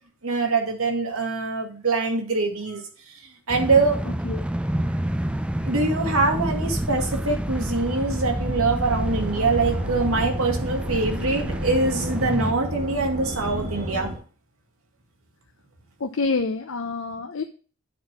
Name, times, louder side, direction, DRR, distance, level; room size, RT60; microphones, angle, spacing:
voice 1, 0.2-3.1 3.5-4.0 5.3-14.1, right 3 dB, 70° right, 2 dB, 2.2 m, -24 dB
sound 1, 3.5-12.5, right 1 dB, 5° right, 0.3 m, -28 dB
sound 2, 8.8-14.2, equal, 35° right, 3.7 m, -32 dB
voice 2, 16.0-17.4, left 4 dB, 60° left, 5 dB, 0.7 m, -27 dB
9.2 x 4.6 x 6.0 m, 0.39 s
head